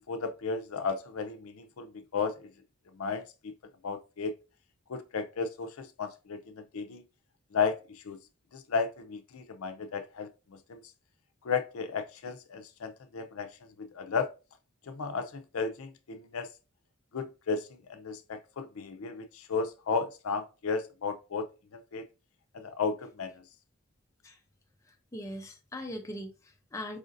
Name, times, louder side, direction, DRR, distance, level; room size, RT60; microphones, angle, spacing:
voice 1, 0.1-2.5 2.9-3.5 3.8-4.3 4.9-7.0 7.5-8.2 8.5-10.8 11.4-13.5 13.8-14.3 14.9-16.5 17.1-22.0 22.5-23.4, left 5 dB, 80° left, 0.5 m, -34 dB
voice 2, 24.8-27.0, left 1 dB, 15° left, 0.5 m, -41 dB
4.9 x 2.5 x 2.5 m
head